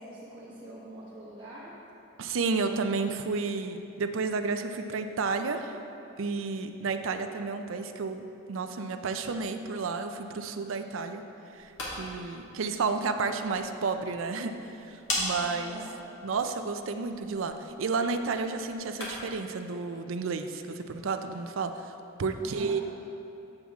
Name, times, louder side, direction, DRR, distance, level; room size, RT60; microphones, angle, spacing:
voice 1, 0.0-1.7 15.4-15.9 22.4-22.8, right 1 dB, 25° right, -10 dB, 1.2 m, -45 dB
voice 2, 2.2-5.8 6.2-11.2 11.5-14.6 14.8-15.8 16.2-21.9 22.2-22.8, right 4 dB, 65° right, 7 dB, 0.5 m, -31 dB
sound 1, 11.5-19.4, left 1 dB, 65° left, 1.8 m, -40 dB
7.7 x 7.2 x 3.6 m, 2.7 s
head